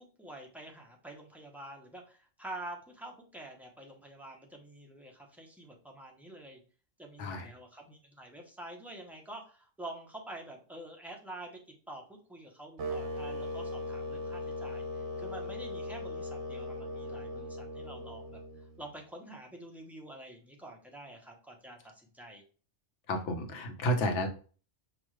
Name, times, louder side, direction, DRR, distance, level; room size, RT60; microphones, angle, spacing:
voice 1, 0.2-6.6 7.0-11.6 11.9-22.4, right 1 dB, ahead, 0 dB, 0.7 m, -47 dB
voice 2, 7.2-7.5 23.1-24.3, equal, 75° left, 5 dB, 1.1 m, -31 dB
sound 1, 12.8-18.9, left 1 dB, 70° right, 1.1 m, -39 dB
6.0 x 2.4 x 3.1 m, 0.39 s
omnidirectional pair, 1.2 m